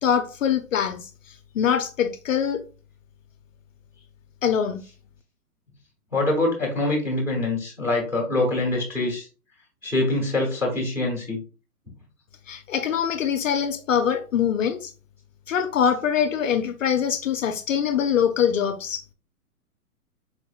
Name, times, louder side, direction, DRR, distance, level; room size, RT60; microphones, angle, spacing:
voice 1, 0.0-1.1 1.5-2.6 4.4-4.8 12.5-14.9 15.5-19.0, left 8 dB, 60° left, 0.5 m, -23 dB
voice 2, 6.1-9.3 9.8-11.4, left 2 dB, 5° right, 1.0 m, -24 dB
4.4 x 2.8 x 2.3 m
hypercardioid pair, 160°, 46 cm